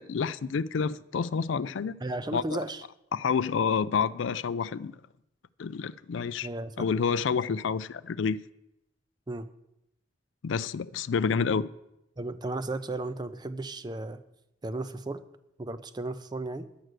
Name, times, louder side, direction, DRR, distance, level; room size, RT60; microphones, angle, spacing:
voice 1, 0.0-2.0 2.3-2.6 3.1-4.9 5.6-6.5 6.8-8.4 10.4-11.7, left 6 dB, 70° left, 0.4 m, -28 dB
voice 2, 2.0-2.8 6.4-6.7 9.3-9.5 12.2-14.2 14.6-15.2 15.6-16.7, right 2 dB, 20° right, 0.5 m, -34 dB
11.0 x 7.7 x 6.5 m
head